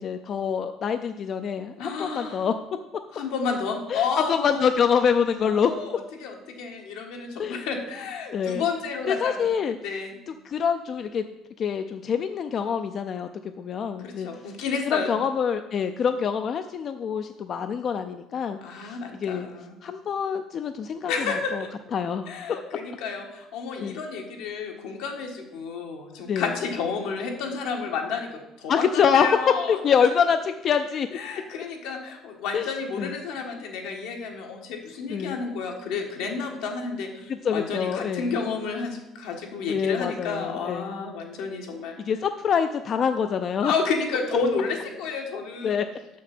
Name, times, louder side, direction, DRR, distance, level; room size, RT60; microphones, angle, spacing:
voice 1, 0.0-2.5 3.9-5.7 7.4-7.7 8.3-8.6 9.1-9.8 10.4-11.2 11.6-13.3 13.6-14.3 14.8-19.5 19.8-21.6 21.9-22.3 23.8-24.0 26.3-26.6 28.7-29.3 29.7-31.1 32.5-32.7 33.0-33.1 35.1-35.4 37.3-38.4 39.7-41.0 42.0-43.7 45.6-45.9, left 7 dB, 45° left, 8 dB, 0.4 m, -25 dB
voice 2, 1.8-2.5 3.1-4.7 5.4-9.5 9.8-10.2 14.0-15.1 18.6-19.8 21.1-21.7 22.3-28.3 28.6-29.8 31.1-41.9 43.6-45.8, left 5 dB, 85° left, 2 dB, 1.6 m, -31 dB
6.6 x 6.2 x 6.0 m, 0.95 s
cardioid pair, 110°, 0 cm